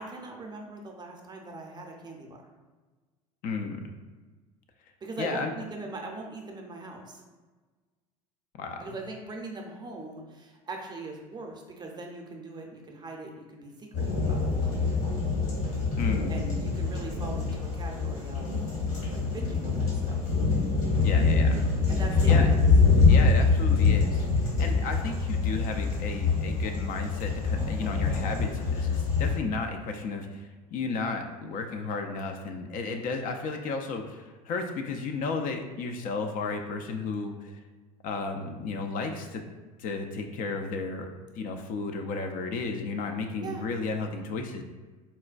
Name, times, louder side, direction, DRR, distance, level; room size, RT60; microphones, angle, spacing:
voice 1, 0.0-2.4 5.0-7.2 8.8-14.5 16.3-18.6 19.1-20.1 21.9-22.6 43.4-43.6, right 2 dB, 20° right, 1 dB, 0.6 m, -41 dB
voice 2, 3.4-3.9 5.2-5.5 8.6-9.0 15.9-16.3 21.0-21.7 22.3-22.5 23.1-24.3 24.6-37.6 38.0-39.4 39.8-41.1 41.4-44.6, left 4 dB, 45° left, 4 dB, 0.4 m, -33 dB
sound 1, 13.9-29.4, left 4 dB, 65° left, 1.3 m, -25 dB
4.1 x 2.1 x 2.4 m, 1.3 s
hypercardioid pair, 80°, 19 cm